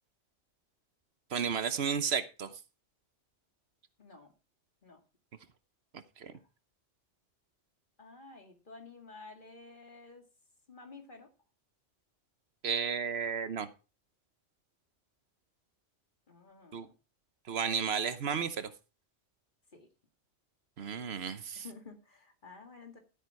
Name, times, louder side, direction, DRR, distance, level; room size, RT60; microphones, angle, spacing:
voice 1, 1.3-2.5 5.9-6.3 12.6-13.7 16.7-16.9 17.5-18.7 20.8-21.6, right 6 dB, 60° right, 13 dB, 1.1 m, -33 dB
voice 2, 4.0-4.3 4.8-5.0 8.0-10.2 10.7-11.3 16.3-16.9 19.7-19.9 21.6-23.0, left 3 dB, 45° left, 5 dB, 2.3 m, -52 dB
13.0 x 8.5 x 4.7 m, 0.32 s
omnidirectional pair, 1.2 m